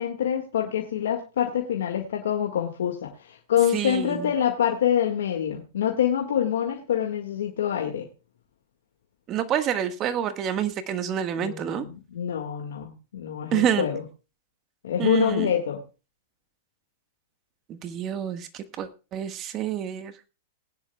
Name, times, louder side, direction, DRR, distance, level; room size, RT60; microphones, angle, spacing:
voice 1, 0.0-8.1 11.4-14.0 14.8-15.8, left 9 dB, 75° left, 2 dB, 1.8 m, -26 dB
voice 2, 3.7-4.3 9.3-11.8 13.5-13.9 15.0-15.5 17.7-20.1, right 9 dB, 35° right, 10 dB, 1.4 m, -28 dB
20.0 x 10.0 x 2.3 m, 0.32 s
hypercardioid pair, 120°, 0 cm